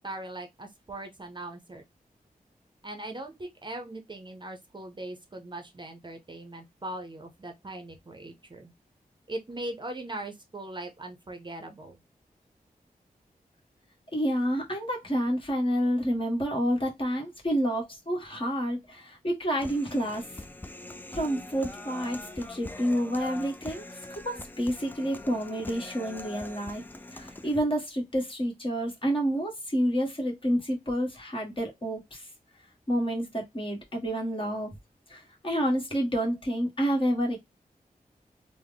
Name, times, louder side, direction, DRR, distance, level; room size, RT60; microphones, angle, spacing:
voice 1, 0.0-1.8 2.8-8.7 9.3-12.0, right 1 dB, 30° right, 0.6 m, -40 dB
voice 2, 14.1-20.2 21.1-23.8 24.2-26.8 27.1-32.3 32.9-34.7 35.1-37.4, equal, 35° left, 1.3 m, -29 dB
Human voice, 19.6-27.6, left 2 dB, 10° left, 0.4 m, -43 dB
3.5 x 2.1 x 3.4 m
wide cardioid pair, 75°, 15 cm